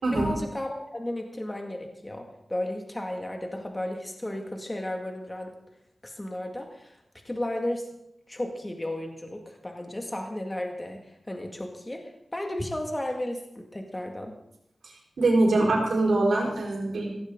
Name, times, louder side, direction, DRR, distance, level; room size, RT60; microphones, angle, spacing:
voice 1, 0.1-5.5 6.0-7.0 7.2-7.9 8.3-11.0 11.3-14.4, left 1 dB, 20° left, 3 dB, 2.2 m, -34 dB
voice 2, 15.2-17.1, right 2 dB, 85° right, -1 dB, 4.4 m, -23 dB
16.0 x 15.5 x 3.9 m, 0.78 s
cardioid pair, 55°, 0 cm